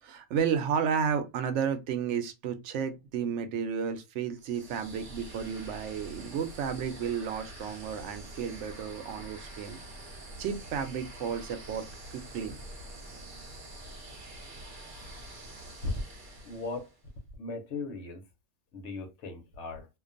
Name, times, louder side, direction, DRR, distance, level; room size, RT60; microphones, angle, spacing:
voice 1, 0.0-9.8 10.4-11.9 12.1-12.6, right 7 dB, 90° right, 0.9 m, -32 dB
sound 1, 4.3-17.0, right 1 dB, 50° right, 0.9 m, -46 dB
voice 2, 16.4-16.9 17.4-18.2 18.7-19.9, left 3 dB, 90° left, 1.1 m, -37 dB
2.5 x 2.2 x 2.5 m
omnidirectional pair, 1.2 m